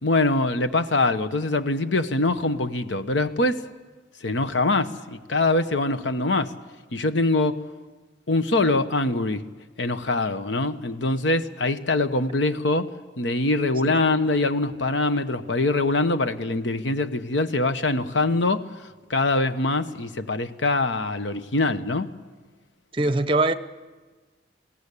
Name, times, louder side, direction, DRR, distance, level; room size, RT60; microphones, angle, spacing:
voice 1, 0.0-3.6 4.2-6.5 6.9-7.6 8.3-9.4 9.8-12.9 13.2-18.6 19.1-22.1, left 2 dB, 85° left, 10 dB, 1.0 m, -23 dB
voice 2, 22.9-23.5, right 2 dB, 30° right, 12 dB, 0.8 m, -22 dB
21.5 x 17.0 x 8.4 m, 1.3 s
head